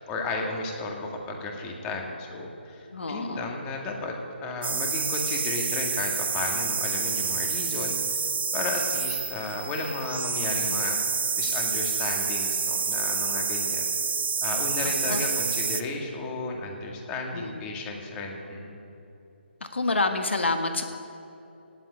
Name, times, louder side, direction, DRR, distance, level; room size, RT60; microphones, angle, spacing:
voice 1, 0.0-4.1 4.4-8.2 8.5-11.0 11.4-13.9 14.4-18.8, left 3 dB, 20° left, 1 dB, 2.1 m, -33 dB
voice 2, 2.9-3.5 14.8-15.2 17.3-17.6 19.7-20.8, left 3 dB, 75° left, 6 dB, 1.5 m, -28 dB
sound 1, 4.6-15.8, right 5 dB, 60° right, 0.9 m, -28 dB
17.5 x 8.2 x 9.2 m, 2.8 s
figure-of-eight pair, 145°, 6 cm